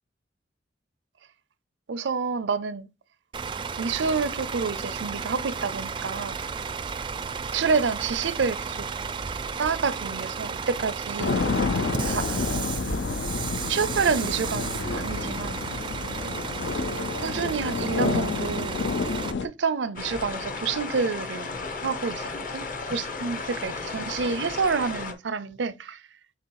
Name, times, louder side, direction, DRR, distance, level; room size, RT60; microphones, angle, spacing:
voice 1, 1.9-2.9 3.8-6.4 7.5-8.9 9.6-11.4 12.1-13.0 13.7-15.6 16.2-16.4 17.2-18.8 19.4-21.5 21.8-26.0, right 5 dB, 85° right, 0.5 m, -28 dB
Bus / Idling, 3.3-19.3, right 5 dB, 25° right, 0.3 m, -33 dB
Various Thunder Sounds, 11.2-19.5, left 4 dB, 75° left, 0.5 m, -29 dB
sound 1, 20.0-25.1, left 4 dB, 50° left, 1.1 m, -34 dB
6.7 x 3.0 x 4.7 m
head